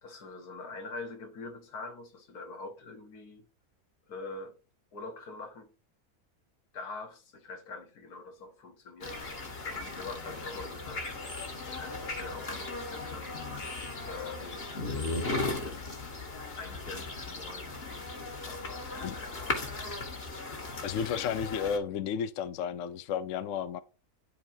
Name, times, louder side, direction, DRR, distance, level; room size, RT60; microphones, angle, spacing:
voice 1, 0.0-3.5 4.1-4.6 4.9-5.7 6.7-11.1 11.7-13.4 14.1-15.9 16.6-17.7 18.5-19.8, left 3 dB, 85° left, 1.8 m, -44 dB
sound 1, 9.0-21.8, left 3 dB, 40° left, 1.7 m, -37 dB
voice 2, 20.8-23.8, left 7 dB, 65° left, 0.9 m, -32 dB
11.5 x 4.4 x 2.7 m
omnidirectional pair, 1.6 m